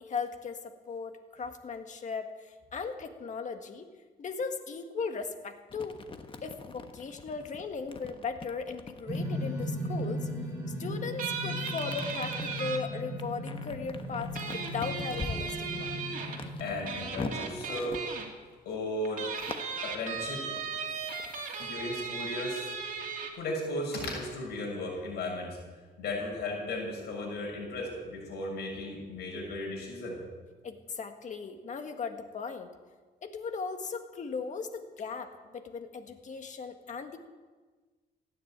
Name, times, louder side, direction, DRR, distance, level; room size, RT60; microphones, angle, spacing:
voice 1, 0.0-3.9 4.2-6.0 6.4-10.3 10.8-15.9 30.6-32.7 33.2-37.2, left 5 dB, 45° left, 6 dB, 1.8 m, -37 dB
sound 1, 5.7-10.6 11.6-18.7 19.3-21.7 22.0-23.3, left 4 dB, 30° left, 1.3 m, -43 dB
sound 2, 9.1-17.5, left 1 dB, 15° right, 5.9 m, -37 dB
sound 3, 11.2-12.8 14.3-16.4 16.9-18.3 19.0-23.3, right 6 dB, 50° right, 2.8 m, -37 dB
voice 2, 16.6-18.0 18.6-19.2 19.8-20.4 21.6-22.7 23.3-25.6 26.0-30.2, left 1 dB, 75° left, -1 dB, 6.9 m, -35 dB
15.5 x 10.0 x 8.8 m, 1.4 s
cardioid pair, 105°, 17 cm